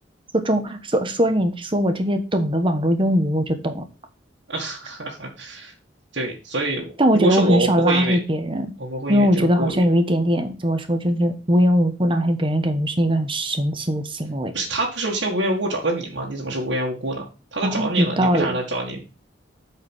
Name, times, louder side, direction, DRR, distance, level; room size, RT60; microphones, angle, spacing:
voice 1, 0.3-3.8 7.0-8.7 9.1-14.5 17.6-18.6, equal, 30° right, 7 dB, 1.3 m, -20 dB
voice 2, 4.5-5.7 6.1-8.2 8.8-9.8 14.5-17.3 17.5-19.1, right 2 dB, 75° right, -4 dB, 1.9 m, -26 dB
8.2 x 4.9 x 6.3 m, 0.33 s
head